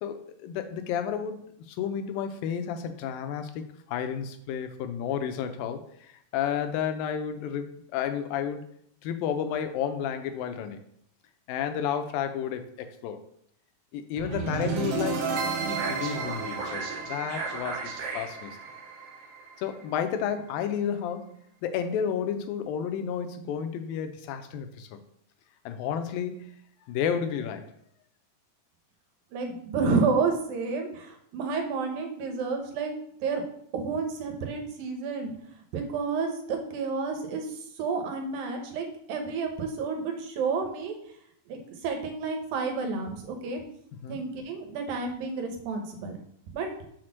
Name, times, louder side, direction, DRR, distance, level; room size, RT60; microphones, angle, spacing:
voice 1, 0.0-8.7 9.0-10.8 11.5-13.2 13.9-15.3 15.5-16.8 17.1-18.6 19.6-25.0 25.7-26.6 26.9-27.7 44.0-44.2, left 8 dB, 85° left, 8 dB, 2.5 m, -32 dB
sound 1, 14.2-20.2, right 4 dB, 65° right, 1.6 m, -32 dB
voice 2, 29.3-32.9 33.2-33.4 33.7-35.3 35.7-40.9 41.5-43.6 44.1-46.2 46.5-46.7, right 4 dB, 80° right, 3 dB, 2.9 m, -30 dB
6.4 x 4.3 x 6.0 m, 0.70 s
omnidirectional pair, 4.1 m